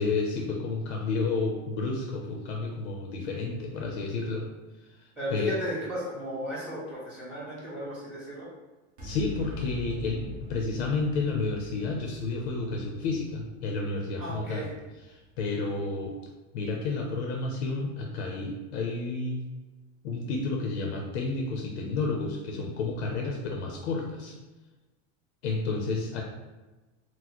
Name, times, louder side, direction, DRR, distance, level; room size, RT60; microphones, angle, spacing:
voice 1, 0.0-4.5 5.3-5.5 9.0-14.7 15.1-16.1 16.5-19.4 20.0-24.3 25.4-26.2, left 3 dB, 55° left, 0 dB, 0.6 m, -31 dB
voice 2, 5.2-8.5 14.2-14.7, equal, 5° right, -9 dB, 1.4 m, -35 dB
sound 1, 9.0-15.7, left 2 dB, 35° right, 1.0 m, -44 dB
4.0 x 2.1 x 2.9 m, 1.2 s
supercardioid pair, 160°, 40 cm